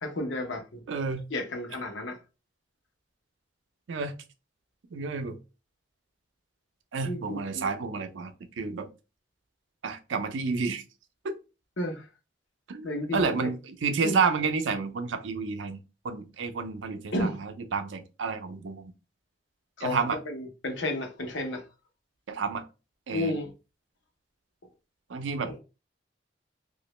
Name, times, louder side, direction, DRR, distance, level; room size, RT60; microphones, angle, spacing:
voice 1, 0.0-0.8 1.3-2.2 7.0-7.7 11.8-12.1 12.8-13.5 14.0-14.1 17.1-17.4 19.8-21.6 23.1-23.5 25.4-25.6, left 1 dB, 85° left, 0.8 m, -32 dB
voice 2, 0.9-1.2 3.9-4.2 4.9-5.4 6.9-8.9 9.8-10.8 11.2-11.3 12.7-18.9 19.8-20.2 22.3-22.6 23.1-23.4 25.1-25.5, right 4 dB, 85° right, 0.5 m, -30 dB
2.9 x 2.5 x 3.1 m
head